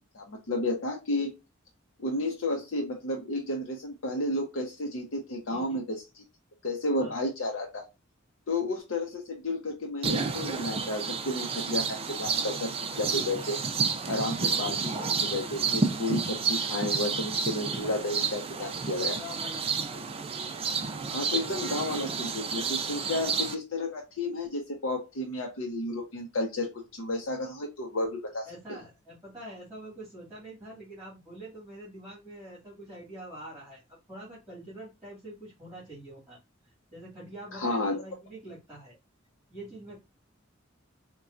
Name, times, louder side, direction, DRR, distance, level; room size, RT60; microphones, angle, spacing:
voice 1, 0.1-1.4 2.0-6.0 6.6-7.8 8.5-13.6 14.1-19.2 21.1-28.5 37.5-38.0, left 2 dB, 70° left, 1 dB, 0.6 m, -32 dB
voice 2, 5.5-5.8 7.0-7.1 14.2-14.4 16.4-16.8 18.9-20.3 28.4-36.4 36.9-39.0 39.5-40.0, right 1 dB, 5° right, -8 dB, 1.9 m, -45 dB
sound 1, 10.0-23.5, right 5 dB, 30° right, 0.4 m, -31 dB
4.1 x 2.2 x 2.4 m, 0.25 s
head